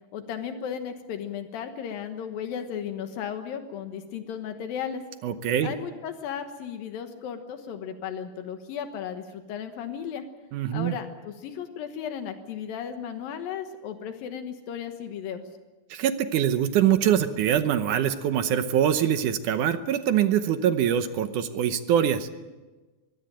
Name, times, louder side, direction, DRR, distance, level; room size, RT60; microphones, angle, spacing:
voice 1, 0.1-5.0 5.6-10.2 10.7-15.4, left 8 dB, 80° left, 7 dB, 3.0 m, -35 dB
voice 2, 5.2-5.7 10.5-10.9 15.9-22.3, right 9 dB, 70° right, 10 dB, 2.2 m, -24 dB
23.0 x 16.5 x 8.9 m, 1.2 s
omnidirectional pair, 4.1 m